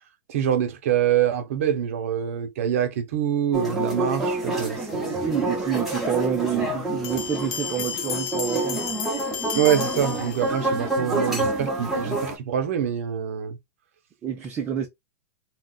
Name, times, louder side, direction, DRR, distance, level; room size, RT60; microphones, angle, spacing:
voice 1, 0.3-5.1 9.5-13.6, right 9 dB, 65° right, 0.9 m, -25 dB
sound 1, 3.5-12.4, right 2 dB, ahead, 0.8 m, -28 dB
voice 2, 5.2-8.8 14.2-14.9, right 9 dB, 20° right, 0.5 m, -28 dB
sound 2, 7.0-10.8, left 8 dB, 40° left, 0.5 m, -33 dB
2.3 x 2.3 x 3.8 m
supercardioid pair, 160°, 8 cm